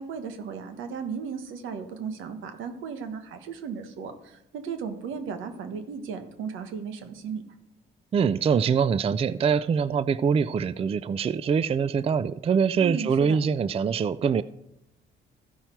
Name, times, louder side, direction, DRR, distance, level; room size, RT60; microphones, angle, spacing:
voice 1, 0.0-7.4 12.8-13.4, right 6 dB, 85° right, 1.3 m, -35 dB
voice 2, 8.1-14.4, right 6 dB, 30° right, 0.4 m, -24 dB
14.5 x 5.7 x 4.5 m
cardioid pair, 90°, 20 cm